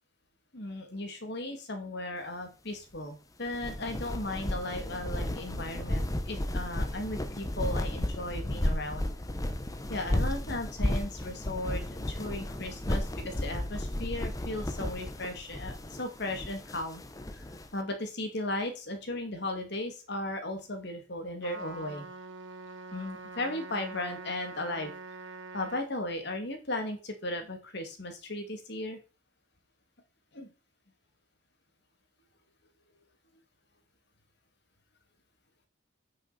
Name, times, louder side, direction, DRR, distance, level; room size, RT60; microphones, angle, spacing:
voice 1, 0.5-9.1 9.9-17.0 17.3-17.4 17.7-22.0 22.9-24.9 25.5-29.0 30.3-30.5, left 1 dB, 60° left, 5 dB, 2.4 m, -36 dB
sound 1, 3.5-17.7, left 1 dB, 20° left, 0.9 m, -33 dB
Trumpet, 21.4-25.8, right 3 dB, 75° right, 1.4 m, -44 dB
9.4 x 6.1 x 4.2 m, 0.32 s
head